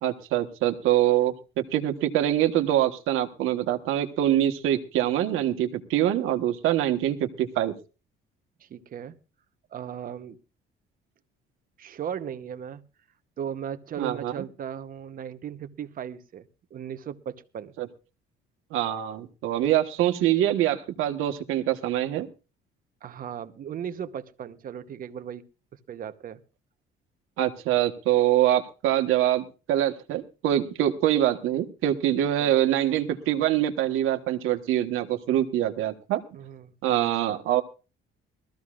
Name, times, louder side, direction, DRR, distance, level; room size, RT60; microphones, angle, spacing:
voice 1, 0.0-7.7 14.0-14.4 17.8-17.9 18.7-22.3 27.4-36.2 36.8-37.6, right 12 dB, 85° right, 6 dB, 1.3 m, -24 dB
voice 2, 8.6-9.2 9.7-10.4 11.8-12.8 13.4-17.7 23.0-25.4 25.9-26.4 32.4-32.5 36.3-36.7, right 8 dB, 45° right, 11 dB, 0.9 m, -37 dB
21.5 x 14.0 x 2.4 m, 0.32 s
cardioid pair, 145°, 21 cm